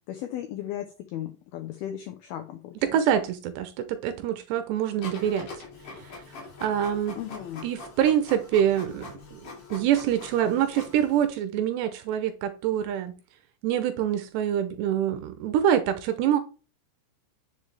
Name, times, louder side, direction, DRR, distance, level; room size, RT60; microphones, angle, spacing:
voice 1, 0.1-2.7 7.2-7.6, left 11 dB, 85° left, 2.2 m, -36 dB
voice 2, 2.8-5.5 6.0-6.2 6.6-7.2 7.6-13.1 13.6-16.4, right 10 dB, 80° right, 2.6 m, -25 dB
Printer, 5.0-11.3, left 3 dB, 45° left, 4.3 m, -43 dB
9.6 x 7.0 x 3.4 m
omnidirectional pair, 5.4 m